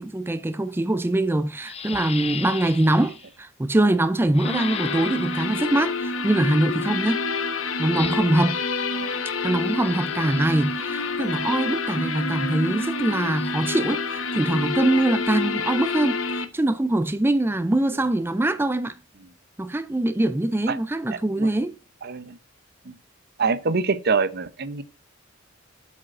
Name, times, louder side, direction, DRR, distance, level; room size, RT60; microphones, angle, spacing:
voice 1, 0.0-7.2 7.8-8.6 9.4-19.0 19.6-21.7, right 1 dB, 10° right, 0.4 m, -23 dB
sound 1, 0.9-1.0 1.6-3.3 4.3-5.7 7.9-8.5 9.5-10.9 13.0-13.5, left 7 dB, 30° left, 0.6 m, -37 dB
sound 2, 4.4-16.4, left 4 dB, 75° left, 1.1 m, -28 dB
voice 2, 8.9-9.2 10.2-10.5 20.7-20.8 21.1-21.5 22.0-22.4 22.8-22.9 23.4-24.8, right 4 dB, 50° right, 0.8 m, -26 dB
Mallet percussion, 11.2-13.7, right 1 dB, 75° right, 1.8 m, -45 dB
8.3 x 5.2 x 5.9 m
head